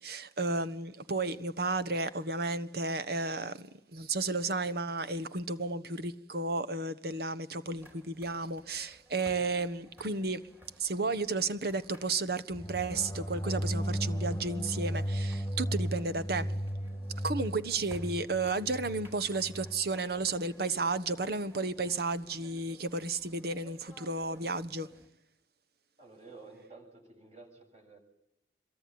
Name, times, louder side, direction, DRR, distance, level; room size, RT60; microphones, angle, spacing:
voice 1, 0.0-10.4 10.8-16.6 17.2-24.9, right 3 dB, 55° right, 1.3 m, -33 dB
sound 1, 7.8-25.1, equal, 10° right, 3.5 m, -58 dB
sound 2, 12.5-19.8, equal, 15° left, 1.7 m, -35 dB
voice 2, 26.0-28.0, right 3 dB, 35° right, 7.8 m, -52 dB
26.5 x 23.0 x 9.6 m
head